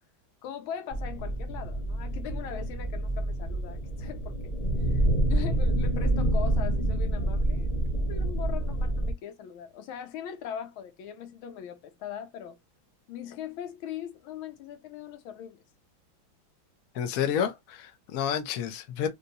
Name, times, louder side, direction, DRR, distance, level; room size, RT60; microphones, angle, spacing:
voice 1, 0.4-4.5 4.8-7.8 8.1-12.6 13.1-15.6, left 9 dB, 90° left, 1.6 m, -40 dB
sound 1, 0.9-9.1, right 1 dB, 30° left, 0.6 m, -27 dB
voice 2, 16.9-19.1, left 8 dB, 60° left, 0.9 m, -30 dB
3.9 x 2.2 x 2.6 m
omnidirectional pair, 2.2 m